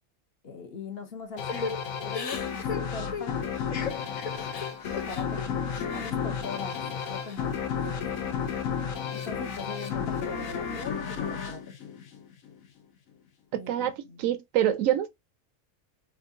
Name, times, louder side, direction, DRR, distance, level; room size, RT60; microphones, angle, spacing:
voice 1, 0.4-3.5 4.8-5.7 5.9-6.8 7.1-8.4 9.1-11.6 13.6-14.3, left 4 dB, 55° left, 0.9 m, -41 dB
sound 1, 1.4-12.6, left 7 dB, 90° left, 1.1 m, -32 dB
Crying sobbing / Breathing, 1.5-6.1 6.5-7.4 7.8-8.6, left 5 dB, 75° left, 0.3 m, -38 dB
voice 2, 13.5-15.1, right 11 dB, 80° right, 0.9 m, -26 dB
4.3 x 2.3 x 2.6 m
omnidirectional pair, 1.4 m